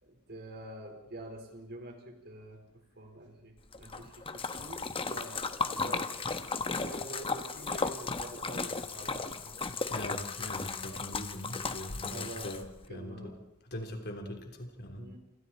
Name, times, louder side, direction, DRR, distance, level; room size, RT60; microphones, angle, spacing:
voice 1, 0.0-6.1 6.5-10.1 12.1-12.6 12.9-13.4 14.9-15.2, right 1 dB, 45° right, 3 dB, 4.4 m, -47 dB
Splash splatter, 3.7-12.8, left 4 dB, 25° left, 1.1 m, -35 dB
voice 2, 9.9-12.6 12.9-13.3 13.7-15.1, left 1 dB, 45° left, 4 dB, 3.6 m, -41 dB
28.5 x 27.0 x 4.3 m, 0.82 s
head